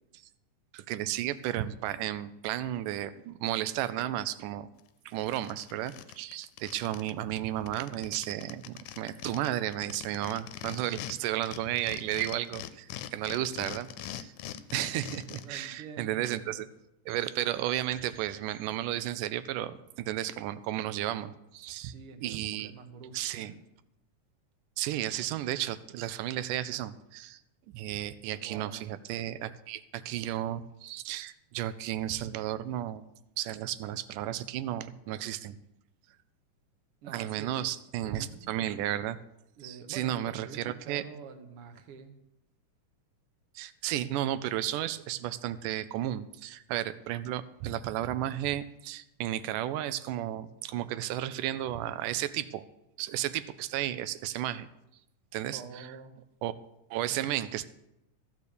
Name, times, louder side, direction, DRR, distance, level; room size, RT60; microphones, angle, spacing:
voice 1, 0.7-4.7 5.1-14.3 14.7-16.7 17.1-21.9 22.2-22.7 23.1-23.5 24.8-27.4 27.7-33.1 33.4-35.6 37.1-39.2 39.6-41.0 43.6-52.7 53.0-54.7 55.3-55.9 56.4-56.5 56.9-57.7, right 13 dB, 85° right, 14 dB, 2.2 m, -33 dB
sound 1, 4.8-4.9 5.2-7.1 7.4-7.5 7.7-11.1 11.4-15.7, left 12 dB, 85° left, 2.1 m, -42 dB
voice 2, 15.4-16.6 21.7-23.6 28.2-28.8 37.0-37.7 38.0-38.5 39.6-42.1 55.5-56.2, right 5 dB, 60° right, 7 dB, 1.7 m, -47 dB
14.5 x 6.9 x 6.7 m, 0.86 s
omnidirectional pair, 3.7 m